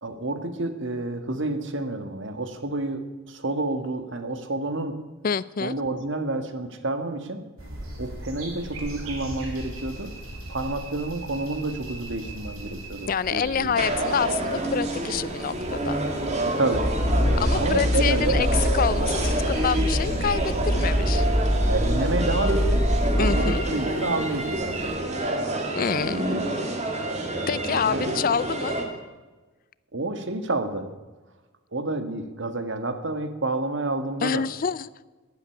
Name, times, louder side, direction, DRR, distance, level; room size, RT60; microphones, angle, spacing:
voice 1, 0.0-5.0 5.6-7.4 8.0-10.1 10.5-13.7 16.4-16.9 17.5-18.4 21.7-22.8 23.1-25.0 27.7-28.1 29.9-30.9 31.7-34.5, right 2 dB, 55° right, 1.6 m, -29 dB
voice 2, 5.2-5.7 13.1-16.0 17.4-18.5 18.7-21.3 23.2-23.6 25.8-26.2 27.5-28.8 34.2-35.1, left 6 dB, 40° left, 0.4 m, -27 dB
sound 1, 7.6-24.9, right 1 dB, 75° right, 4.0 m, -40 dB
sound 2, 13.7-28.8, right 1 dB, 30° right, 2.2 m, -28 dB
sound 3, 16.7-23.6, equal, 20° left, 3.2 m, -24 dB
12.0 x 11.0 x 9.9 m
head